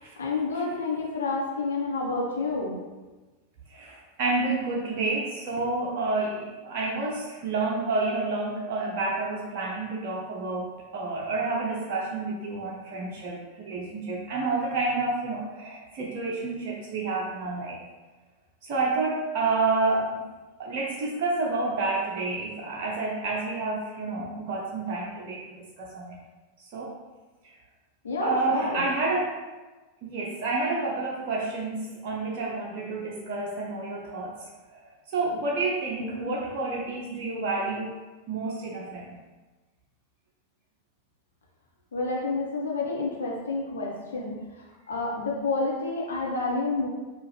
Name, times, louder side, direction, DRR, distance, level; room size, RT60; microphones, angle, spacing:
voice 1, 0.2-2.7 28.0-28.8 36.0-36.3 41.9-44.4 44.9-46.9, left 3 dB, 70° left, -3 dB, 0.9 m, -29 dB
voice 2, 3.7-17.8 18.6-20.2 20.6-26.2 26.7-26.9 28.2-29.4 30.0-34.4 34.7-37.9 38.3-39.2, right 3 dB, 45° right, -3 dB, 0.6 m, -29 dB
4.5 x 2.4 x 3.2 m, 1.2 s
figure-of-eight pair, 90°, 0 cm